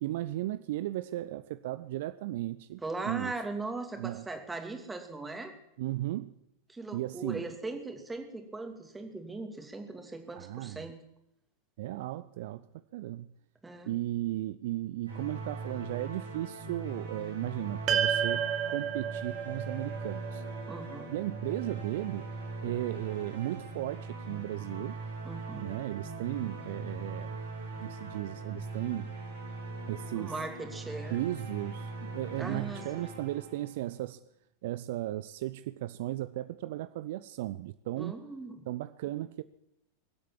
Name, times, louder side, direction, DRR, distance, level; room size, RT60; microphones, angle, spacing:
voice 1, 0.0-3.3 4.0-4.3 5.8-6.3 6.9-7.4 10.4-10.9 11.8-12.7 12.9-13.3 13.9-20.4 21.1-22.3 22.6-25.0 25.6-27.4 27.8-29.2 29.9-30.3 31.1-34.2 34.6-38.2 38.7-39.4, right 15 dB, 55° right, 0.5 m, -35 dB
voice 2, 2.8-5.5 6.7-11.0 13.6-14.0 20.7-21.1 25.2-25.7 30.1-31.2 32.4-33.1 38.0-38.6, right 3 dB, 10° right, 2.6 m, -39 dB
sound 1, 15.1-34.0, right 3 dB, 80° right, 5.4 m, -41 dB
sound 2, 17.9-22.3, right 8 dB, 35° right, 1.7 m, -33 dB
22.5 x 8.4 x 7.4 m
figure-of-eight pair, 90°, 0 cm